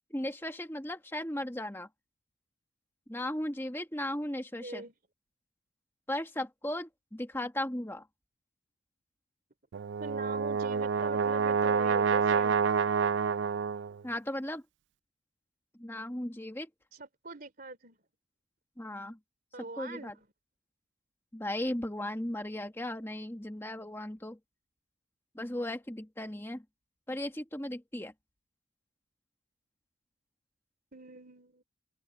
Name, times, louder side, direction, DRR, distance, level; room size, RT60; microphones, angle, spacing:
voice 1, 0.1-1.9 3.1-4.8 6.1-8.1 14.0-14.6 15.8-16.7 18.8-19.2 19.6-20.1 21.3-24.4 25.3-26.6 27.1-28.1, left 1 dB, 10° left, 1.4 m, -36 dB
voice 2, 4.6-4.9 10.0-12.6 16.9-18.0 19.5-20.1 30.9-31.6, right 2 dB, 45° right, 3.2 m, -42 dB
Brass instrument, 9.7-14.0, right 6 dB, 60° right, 0.4 m, -28 dB
open air
head